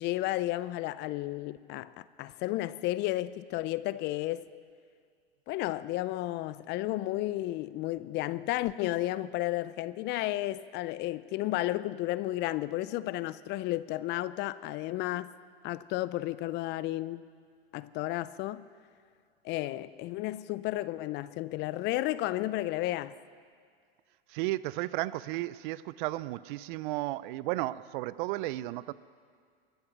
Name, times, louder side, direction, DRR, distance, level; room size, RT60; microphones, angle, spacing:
voice 1, 0.0-4.5 5.5-15.3 15.6-17.2 17.7-18.7 19.4-23.1, left 16 dB, 35° left, 0.4 m, -32 dB
voice 2, 24.3-28.9, right 17 dB, 55° right, 0.4 m, -34 dB
21.5 x 8.0 x 6.1 m
hypercardioid pair, 105°, 31 cm